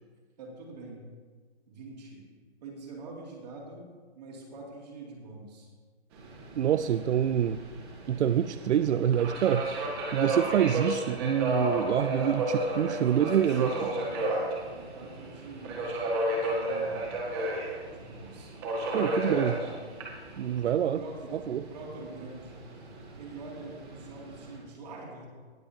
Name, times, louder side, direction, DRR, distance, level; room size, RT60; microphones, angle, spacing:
voice 1, 0.4-1.0 1.7-2.3 2.6-3.8 4.1-5.7 12.7-14.5 14.7-15.9 16.4-17.3 17.9-18.5 18.9-19.8 20.1-20.3 20.9-22.6 23.2-25.3, right 3 dB, 35° right, -2 dB, 2.6 m, -44 dB
Subway metro underground, 6.1-24.6, right 1 dB, 20° right, 1.8 m, -33 dB
voice 2, 6.6-7.6 8.1-9.6 10.1-13.7 18.9-19.5 20.4-21.0 21.5-21.6, right 9 dB, 85° right, 11 dB, 0.5 m, -26 dB
18.5 x 7.5 x 2.9 m, 1.5 s
hypercardioid pair, 165°, 34 cm